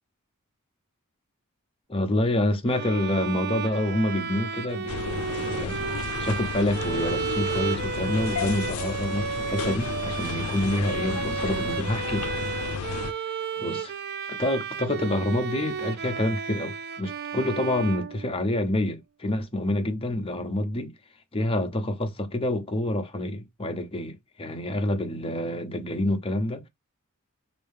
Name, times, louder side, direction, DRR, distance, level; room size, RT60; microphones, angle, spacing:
voice 1, 1.9-5.8 6.2-12.5 12.9-13.9 14.3-20.9 21.3-26.7, left 1 dB, 25° left, 0.8 m, -28 dB
Bowed string instrument, 2.7-18.7, right 6 dB, 45° right, 0.4 m, -33 dB
sound 1, 4.9-13.1, left 5 dB, 75° left, 0.4 m, -33 dB
5.3 x 2.9 x 3.4 m
head